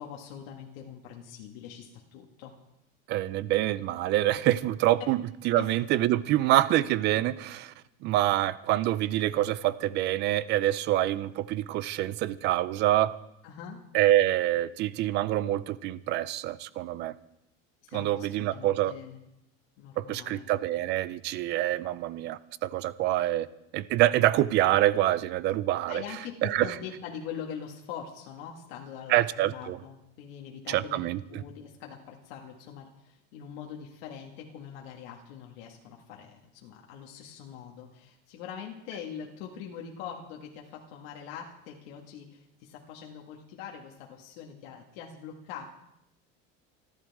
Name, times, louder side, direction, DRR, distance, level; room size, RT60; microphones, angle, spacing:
voice 1, 0.0-2.5 5.6-5.7 13.4-13.8 17.8-19.2 19.8-20.4 25.9-45.6, left 8 dB, 80° left, 0 dB, 2.0 m, -43 dB
voice 2, 3.1-5.2 5.4-7.7 8.0-13.1 13.9-17.1 17.9-18.9 20.0-23.5 23.7-26.0 26.4-26.7 29.1-29.8 30.7-31.2, right 14 dB, 35° right, 16 dB, 0.5 m, -26 dB
28.0 x 11.5 x 3.6 m, 0.84 s
cardioid pair, 175°, 30 cm